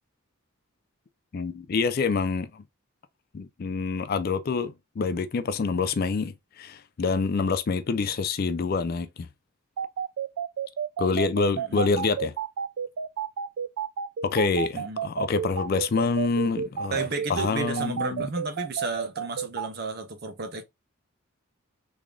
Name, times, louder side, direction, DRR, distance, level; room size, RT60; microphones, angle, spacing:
voice 1, 1.3-2.6 3.3-9.3 11.0-12.3 14.2-16.9 17.3-18.3, left 4 dB, 45° left, 0.3 m, -26 dB
sound 1, 9.8-19.7, right 7 dB, 75° right, 0.3 m, -30 dB
voice 2, 16.9-20.6, right 3 dB, 45° right, 0.7 m, -33 dB
3.6 x 3.3 x 2.4 m
head